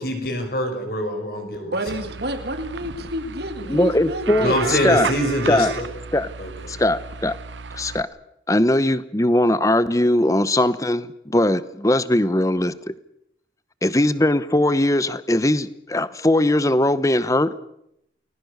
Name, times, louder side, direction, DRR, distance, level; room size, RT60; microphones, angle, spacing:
voice 1, 0.0-2.0 4.4-5.9 6.4-6.8, equal, 55° left, 5 dB, 5.9 m, -25 dB
voice 2, 1.6-5.0, equal, 60° right, 8 dB, 2.1 m, -30 dB
sound 1, 1.9-8.0, right 5 dB, 85° right, 0.9 m, -33 dB
voice 3, 3.7-5.1 5.5-5.7 6.1-6.3 6.7-7.3 7.7-8.1 8.5-12.7 13.8-17.5, left 1 dB, 15° left, 16 dB, 0.9 m, -20 dB
29.5 x 20.5 x 6.8 m, 0.78 s
head